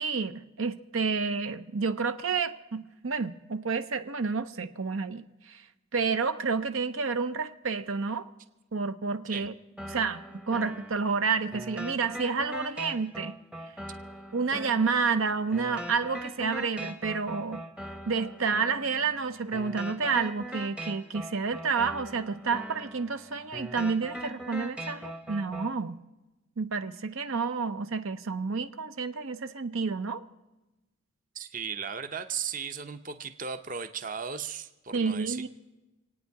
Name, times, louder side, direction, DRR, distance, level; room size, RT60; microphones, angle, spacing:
voice 1, 0.0-5.6 5.9-8.3 8.7-9.5 9.9-13.4 14.3-17.6 18.1-26.0 26.6-30.2 34.9-35.5, right 5 dB, 75° right, 10 dB, 0.7 m, -30 dB
sound 1, 9.8-25.8, right 1 dB, 5° right, 0.7 m, -41 dB
voice 2, 31.3-35.5, right 6 dB, 40° right, 9 dB, 0.8 m, -36 dB
26.5 x 9.3 x 4.7 m, 1.1 s
head